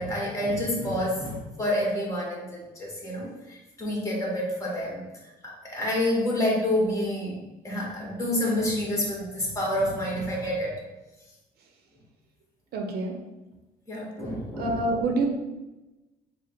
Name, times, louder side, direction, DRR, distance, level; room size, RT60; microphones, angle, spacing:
voice 1, 0.0-5.0 5.4-7.4 7.6-10.7 13.9-15.0, left 1 dB, 20° left, -3 dB, 1.5 m, -28 dB
voice 2, 12.7-13.1 14.6-15.3, right 2 dB, 65° right, 2 dB, 0.7 m, -26 dB
4.8 x 2.1 x 4.4 m, 1.1 s
cardioid pair, 110°, 17 cm